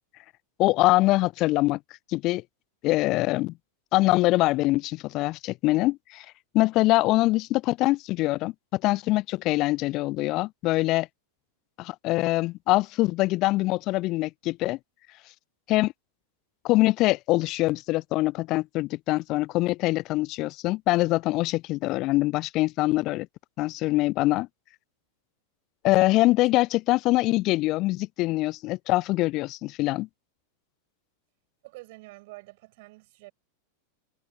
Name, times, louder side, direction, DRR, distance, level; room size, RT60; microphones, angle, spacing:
voice 1, 0.6-1.8 2.1-2.4 2.8-3.5 3.9-6.3 6.5-11.1 11.8-14.8 15.7-15.9 16.6-23.3 23.6-24.5 25.8-30.1, left 19 dB, 40° left, 0.3 m, -24 dB
voice 2, 31.6-33.3, right 23 dB, 50° right, 7.1 m, -47 dB
figure-of-eight pair, 90°, 0 cm